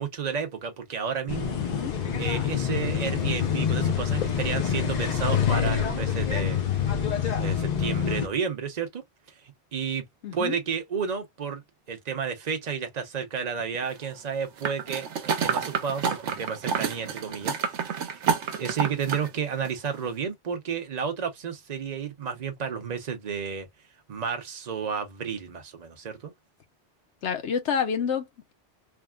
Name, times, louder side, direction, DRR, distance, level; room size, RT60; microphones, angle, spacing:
voice 1, 0.0-1.6 2.2-6.6 7.4-9.0 9.7-10.0 10.3-11.6 11.9-18.3 18.6-23.7 24.1-26.3, right 6 dB, 40° right, 0.8 m, -32 dB
sound 1, 1.3-8.3, left 8 dB, 45° left, 0.7 m, -26 dB
voice 2, 1.6-1.9 10.2-10.5 27.2-28.5, left 7 dB, 80° left, 1.1 m, -29 dB
sound 2, 14.6-19.3 19.6-19.7, right 6 dB, 85° right, 1.0 m, -29 dB
3.5 x 2.0 x 2.3 m
omnidirectional pair, 1.2 m